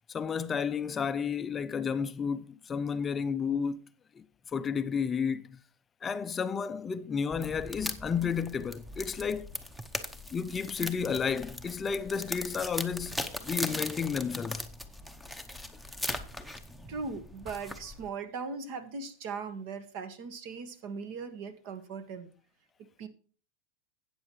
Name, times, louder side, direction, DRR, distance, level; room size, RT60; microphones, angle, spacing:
voice 1, 0.1-3.9 4.1-4.2 4.5-5.6 6.0-9.5 10.3-14.6, left 6 dB, 20° left, 0.5 m, -32 dB
sound 1, 7.3-18.1, left 1 dB, ahead, 0.8 m, -39 dB
voice 2, 16.9-22.3 23.0-23.1, right 5 dB, 55° right, 1.6 m, -39 dB
12.5 x 8.8 x 3.1 m
supercardioid pair, 135°, 0 cm